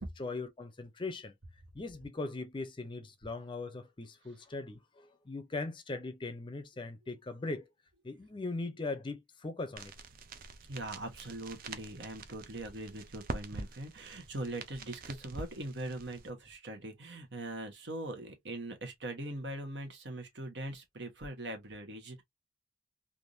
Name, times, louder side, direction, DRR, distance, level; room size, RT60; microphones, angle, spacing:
voice 1, 0.2-1.3 1.7-7.7 8.0-9.9, left 3 dB, 25° left, 0.5 m, -40 dB
sound 1, 9.8-16.3, right 3 dB, 50° right, 0.5 m, -45 dB
voice 2, 10.7-22.2, right 1 dB, 70° right, 1.2 m, -41 dB
3.4 x 2.6 x 2.6 m
head